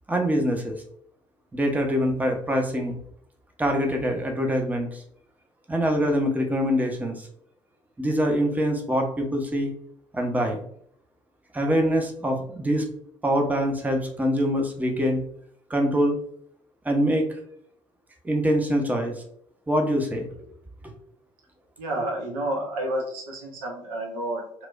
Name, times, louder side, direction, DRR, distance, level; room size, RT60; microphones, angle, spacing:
voice 1, 0.1-0.8 1.5-3.0 3.6-5.0 5.7-7.3 8.0-9.7 10.1-10.6 11.5-12.9 13.2-15.2 15.7-16.2 16.8-17.4 18.2-19.1 19.7-20.3 20.8-20.9, equal, 10° right, 2 dB, 0.6 m, -24 dB
voice 2, 21.8-24.7, right 1 dB, 70° right, 0 dB, 0.7 m, -30 dB
3.0 x 2.0 x 2.5 m, 0.65 s
figure-of-eight pair, 45°, 15 cm